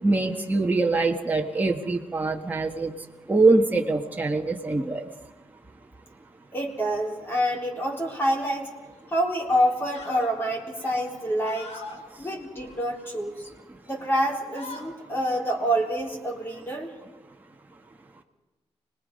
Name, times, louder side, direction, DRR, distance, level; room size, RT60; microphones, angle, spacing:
voice 1, 0.0-2.9 3.3-5.1 13.7-13.8, right 3 dB, 15° right, 0 dB, 1.6 m, -23 dB
voice 2, 6.5-8.7 9.1-11.8 12.2-13.5 13.9-16.9, equal, 20° left, -2 dB, 3.7 m, -27 dB
sound 1, 8.9-9.1 9.6-10.3 10.7-12.0 12.5-13.4 13.8-14.0 14.3-14.9, left 3 dB, 85° left, 4.5 m, -43 dB
29.5 x 20.0 x 5.4 m, 1.1 s
wide cardioid pair, 150°, 11 cm